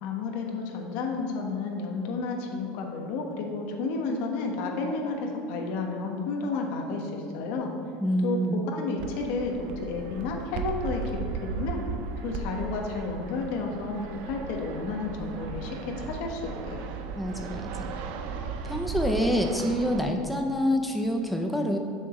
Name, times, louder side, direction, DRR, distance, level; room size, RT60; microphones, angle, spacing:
voice 1, 0.0-7.7 8.2-11.8 12.2-16.8, left 3 dB, 50° left, 2 dB, 1.2 m, -31 dB
voice 2, 8.0-8.6 17.2-17.7 18.6-21.8, equal, ahead, 2 dB, 0.4 m, -26 dB
Fixed-wing aircraft airplane, 9.0-20.0, right 5 dB, 50° right, 0.6 m, -36 dB
7.1 x 4.9 x 7.0 m, 2.3 s
cardioid pair, 170°, 3 cm